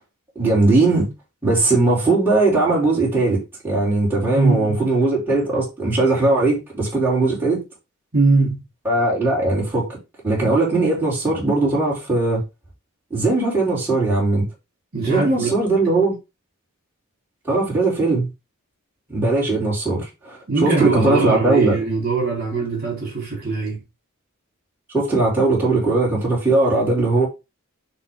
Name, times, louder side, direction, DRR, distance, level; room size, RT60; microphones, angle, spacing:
voice 1, 0.4-1.1 1.4-7.6 8.8-9.9 10.2-12.4 13.1-14.5 15.1-16.2 17.5-18.3 19.1-21.7 24.9-27.3, right 2 dB, 10° right, 3.8 m, -19 dB
voice 2, 4.3-4.8 8.1-8.6 14.9-15.6 20.5-23.8, right 3 dB, 45° right, 3.4 m, -21 dB
9.7 x 3.6 x 3.8 m
head